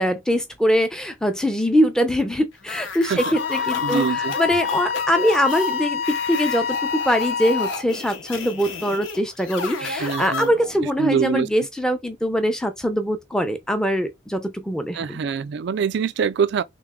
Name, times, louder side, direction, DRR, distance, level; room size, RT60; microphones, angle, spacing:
voice 1, 0.0-15.2, equal, 5° left, 0.6 m, -22 dB
sound 1, 2.6-10.9, left 4 dB, 70° left, 1.0 m, -32 dB
voice 2, 3.0-3.3 3.8-4.3 10.0-10.5 11.0-11.7 14.9-16.6, right 6 dB, 55° right, 0.3 m, -24 dB
Wind instrument woodwind instrument, 3.3-7.8, left 7 dB, 50° left, 0.4 m, -26 dB
3.4 x 3.2 x 3.6 m
head